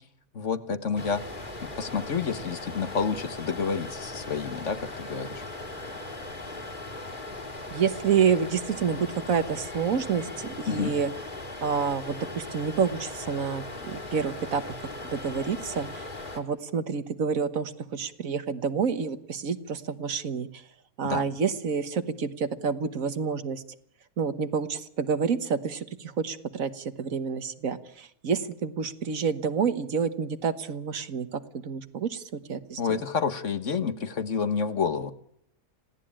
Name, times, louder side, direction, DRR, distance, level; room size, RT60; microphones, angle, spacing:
voice 1, 0.3-1.2 1.6-5.4 10.7-10.9 21.0-21.3 32.8-35.1, left 5 dB, 55° left, 11 dB, 1.7 m, -29 dB
sound 1, 1.0-16.4, left 2 dB, 35° left, 3.1 m, -39 dB
voice 2, 7.7-11.1 11.6-14.6 15.0-16.1 16.4-20.6 21.0-23.6 24.2-33.0, right 6 dB, 70° right, 12 dB, 1.7 m, -28 dB
26.5 x 17.5 x 8.8 m, 0.72 s
omnidirectional pair, 1.5 m